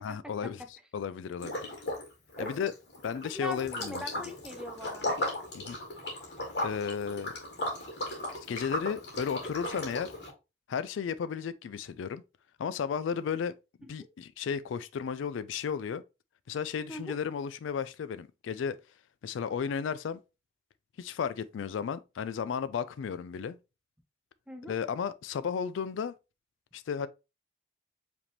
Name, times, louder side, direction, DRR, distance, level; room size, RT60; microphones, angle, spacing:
voice 1, 0.0-1.5 2.4-2.7 3.0-4.0 5.5-5.8 6.6-7.3 8.5-10.1 10.7-12.2 12.6-13.6 13.9-16.0 16.5-18.8 19.2-20.2 21.0-23.6 24.6-26.1 26.7-27.1, left 7 dB, 85° left, 0.3 m, -34 dB
Liquid, 1.4-2.1 2.3-10.3, left 1 dB, 60° left, 1.6 m, -36 dB
voice 2, 3.2-5.1 16.9-17.1 24.5-24.8, equal, 5° right, 0.5 m, -40 dB
4.9 x 3.5 x 2.9 m
head